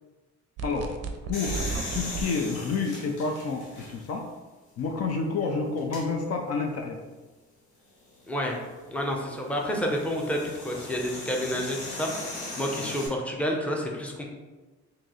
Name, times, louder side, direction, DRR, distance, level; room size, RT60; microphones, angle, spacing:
voice 1, 0.6-1.0 1.3-1.7 1.9-4.3 4.8-7.0 12.7-12.9, left 4 dB, 55° left, 2 dB, 0.5 m, -29 dB
sound 1, 0.6-2.2, right 5 dB, 55° right, 0.5 m, -33 dB
sound 2, 1.3-4.2 4.8-4.9 5.8-6.0 8.2-13.1, left 2 dB, 90° left, 1.1 m, -39 dB
voice 2, 8.3-8.6 8.9-14.3, equal, 5° left, 0 dB, 0.6 m, -29 dB
3.0 x 2.7 x 3.9 m, 1.2 s
cardioid pair, 90°, 30 cm